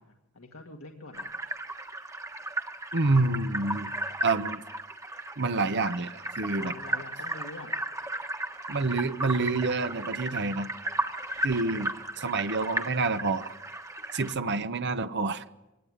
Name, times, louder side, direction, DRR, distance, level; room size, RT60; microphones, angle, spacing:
voice 1, 0.0-1.3 6.6-7.7 14.4-14.6, left 2 dB, 75° left, 1 dB, 2.0 m, -45 dB
sound 1, 1.1-14.3, right 1 dB, 15° right, 1.4 m, -35 dB
voice 2, 2.9-3.9 4.2-4.6 5.4-6.7 8.7-10.7 11.4-11.9 12.2-13.5 14.1-15.4, right 3 dB, 55° right, 11 dB, 1.0 m, -28 dB
24.0 x 18.5 x 9.5 m, 1.0 s
head